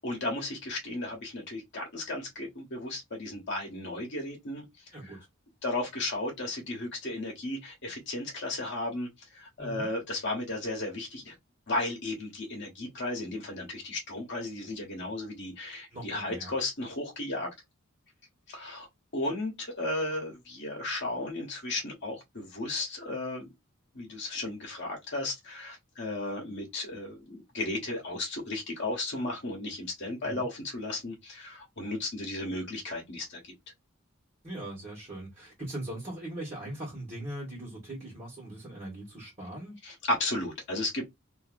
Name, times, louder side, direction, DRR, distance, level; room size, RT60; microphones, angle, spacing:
voice 1, 0.0-4.6 5.6-9.1 9.3-11.3 11.7-17.5 18.5-18.9 19.1-23.5 23.9-33.5 39.8-41.1, left 2 dB, 55° left, 1.0 m, -34 dB
voice 2, 9.6-9.9 15.9-16.5 30.2-30.5 34.4-39.8, right 1 dB, 30° right, 1.3 m, -40 dB
2.7 x 2.6 x 2.5 m
head